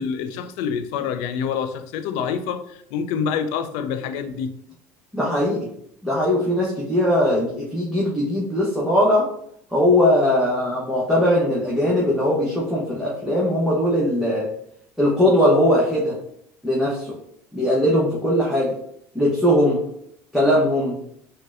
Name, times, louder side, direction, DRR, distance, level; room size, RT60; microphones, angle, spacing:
voice 1, 0.0-4.5, left 7 dB, 70° left, 9 dB, 0.4 m, -27 dB
voice 2, 5.1-5.7 6.0-9.3 9.7-14.5 15.0-16.1 16.6-17.1 17.5-18.7 19.1-19.8 20.3-21.0, left 1 dB, ahead, -6 dB, 0.8 m, -20 dB
4.0 x 2.2 x 2.4 m, 0.71 s
supercardioid pair, 85°, 8 cm